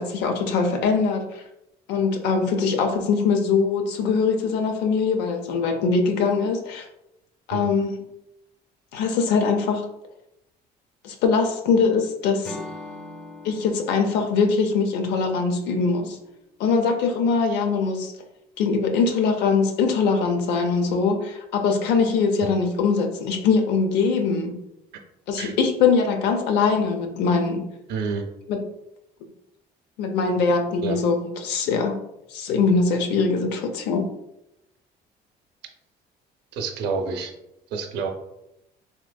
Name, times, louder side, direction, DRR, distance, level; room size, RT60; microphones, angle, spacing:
voice 1, 0.0-1.4 1.9-6.9 7.5-8.0 8.9-9.9 11.0-12.6 13.4-16.2 16.6-18.1 18.6-24.5 25.3-27.7 28.5-28.6 30.0-32.0 32.3-34.0, left 5 dB, 85° left, 4 dB, 0.5 m, -22 dB
Acoustic guitar / Strum, 12.4-16.5, left 1 dB, 5° left, 0.5 m, -42 dB
voice 2, 27.9-28.2 30.8-31.0 36.5-37.3 37.7-38.1, right 5 dB, 80° right, 4 dB, 0.6 m, -28 dB
3.3 x 2.9 x 2.2 m, 0.84 s
cardioid pair, 110°, 17 cm